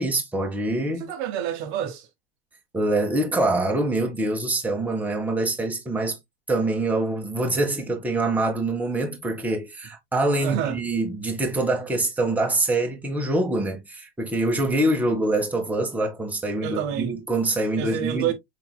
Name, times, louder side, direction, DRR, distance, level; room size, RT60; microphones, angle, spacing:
voice 1, 0.0-1.1 2.7-6.2 6.5-18.3, right 2 dB, 5° right, 1.2 m, -25 dB
voice 2, 1.0-2.1 10.4-10.8 16.6-17.1 17.8-18.3, right 9 dB, 40° right, 0.9 m, -28 dB
5.6 x 4.2 x 2.2 m
figure-of-eight pair, 85°, 32 cm